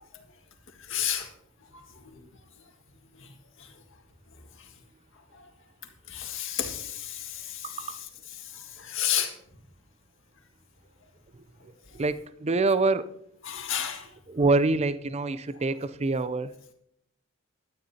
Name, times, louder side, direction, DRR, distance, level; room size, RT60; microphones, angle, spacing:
voice 1, 0.9-1.3 1.7-1.8 6.1-7.8 8.5-9.3 13.4-14.1, left 10 dB, 60° left, 1.9 m, -31 dB
voice 2, 7.6-8.0 11.9-13.0 14.3-16.7, right 3 dB, 30° right, 0.5 m, -26 dB
17.5 x 12.0 x 2.8 m
head